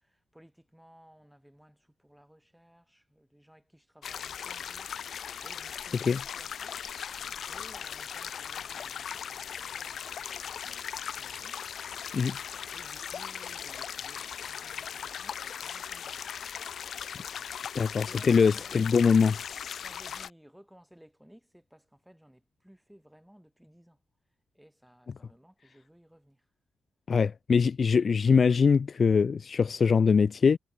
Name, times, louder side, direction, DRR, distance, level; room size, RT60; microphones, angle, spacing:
voice 1, 0.0-6.8 7.2-11.6 12.7-16.2 17.3-17.5 18.0-24.0 24.5-26.5, equal, 5° right, 6.4 m, -58 dB
sound 1, 4.0-20.3, left 8 dB, 65° left, 2.8 m, -38 dB
voice 2, 17.8-19.3 27.1-30.6, left 5 dB, 45° left, 0.3 m, -23 dB
wide cardioid pair, 135°, 0 cm